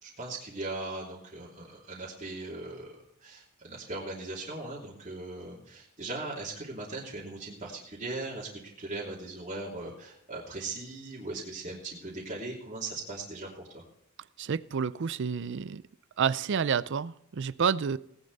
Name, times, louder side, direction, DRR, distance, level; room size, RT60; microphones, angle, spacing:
voice 1, 0.0-3.0 3.2-13.8, right 2 dB, 35° right, -6 dB, 3.0 m, -39 dB
voice 2, 14.4-15.8 16.2-18.0, right 6 dB, 60° right, 18 dB, 0.5 m, -29 dB
18.0 x 10.0 x 4.1 m, 0.74 s
head